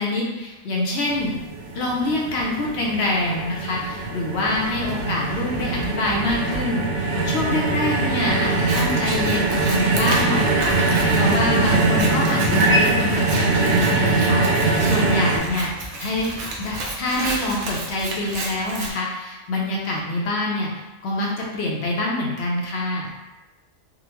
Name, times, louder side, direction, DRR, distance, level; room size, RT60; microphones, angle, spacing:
voice 1, 0.0-1.3 1.7-15.7 16.0-16.3 16.6-23.1, left 2 dB, 65° left, -3 dB, 0.8 m, -26 dB
sound 1, 1.1-15.4, right 3 dB, 60° right, 0.6 m, -22 dB
Computer keyboard, 4.3-18.4, right 1 dB, 25° left, 0.6 m, -41 dB
Scissors, 8.5-18.9, right 2 dB, 80° right, 1.0 m, -32 dB
3.7 x 2.0 x 2.9 m, 1.1 s
omnidirectional pair, 1.4 m